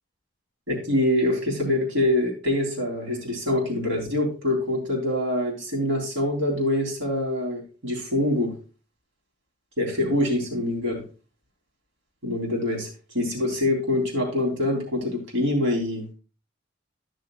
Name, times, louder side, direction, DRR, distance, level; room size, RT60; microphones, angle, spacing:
voice 1, 0.7-8.5 9.8-11.0 12.2-12.9 13.1-16.1, left 1 dB, 80° right, 0 dB, 3.7 m, -25 dB
14.0 x 6.5 x 2.5 m, 0.34 s
head